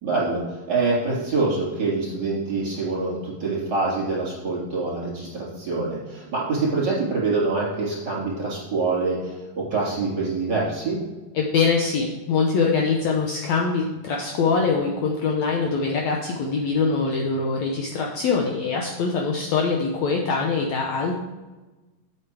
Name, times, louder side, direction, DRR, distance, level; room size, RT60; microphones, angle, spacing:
voice 1, 0.0-11.0, right 3 dB, 30° right, -7 dB, 3.8 m, -25 dB
voice 2, 11.4-21.1, left 4 dB, 70° left, 0 dB, 1.8 m, -23 dB
8.1 x 7.7 x 4.6 m, 1.2 s
omnidirectional pair, 3.8 m